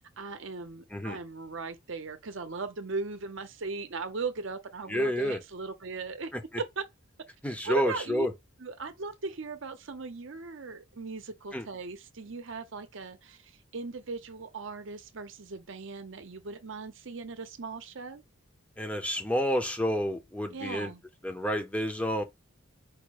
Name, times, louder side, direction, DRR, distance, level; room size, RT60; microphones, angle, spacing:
voice 1, 0.2-6.3 6.6-6.8 7.6-8.3 8.6-18.2 20.5-21.0, right 4 dB, 60° right, 0.7 m, -38 dB
voice 2, 4.9-5.4 6.3-6.4 7.4-8.3 11.5-11.7 18.8-20.9 21.2-22.2, equal, 5° left, 0.6 m, -29 dB
4.8 x 2.1 x 4.6 m
head